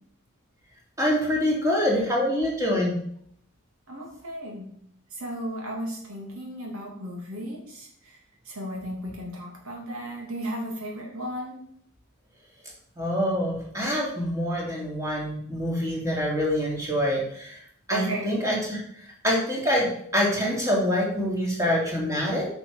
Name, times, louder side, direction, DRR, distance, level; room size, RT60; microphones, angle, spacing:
voice 1, 1.0-2.9 13.0-17.6 17.9-18.8 19.2-22.5, equal, 15° right, -3 dB, 2.9 m, -25 dB
voice 2, 3.9-4.7 5.1-8.2 8.4-11.6 17.9-18.3, equal, 70° right, 0 dB, 2.8 m, -35 dB
9.5 x 6.4 x 4.9 m, 0.67 s
head